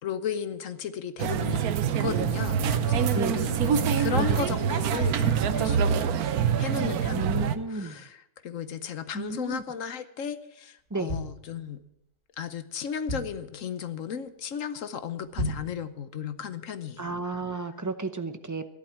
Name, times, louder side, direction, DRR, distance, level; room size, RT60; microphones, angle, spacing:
voice 1, 0.0-1.6 2.0-11.8 12.4-17.2, left 7 dB, 60° left, 12 dB, 1.2 m, -35 dB
sound 1, 1.2-7.6, right 8 dB, 75° right, 1.3 m, -25 dB
voice 2, 3.1-3.4 4.1-4.5 7.1-8.1 9.1-9.6 10.9-11.1 17.0-18.6, right 3 dB, 20° right, 9 dB, 0.5 m, -32 dB
sound 2, 10.8-12.0 12.5-12.6 12.8-13.6 14.0-14.3 14.6-14.7 15.2-15.8 16.2-16.3, equal, 45° right, 6.2 m, -34 dB
13.0 x 11.0 x 7.3 m, 0.80 s
omnidirectional pair, 1.6 m